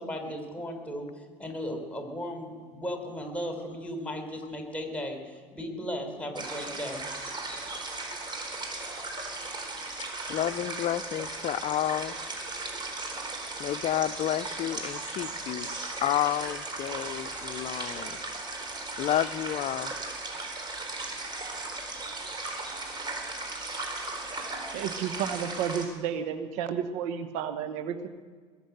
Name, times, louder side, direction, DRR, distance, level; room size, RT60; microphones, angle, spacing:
voice 1, 0.0-7.0, equal, 10° left, 4 dB, 4.6 m, -36 dB
sound 1, 6.3-25.8, right 2 dB, 25° right, 4.2 m, -37 dB
voice 2, 10.3-12.1 13.6-15.7 16.0-18.2 19.0-19.9, left 12 dB, 45° left, 16 dB, 0.7 m, -30 dB
voice 3, 24.7-28.1, right 8 dB, 70° right, 10 dB, 1.2 m, -32 dB
21.0 x 7.4 x 7.9 m, 1.5 s
hypercardioid pair, 75°, 17 cm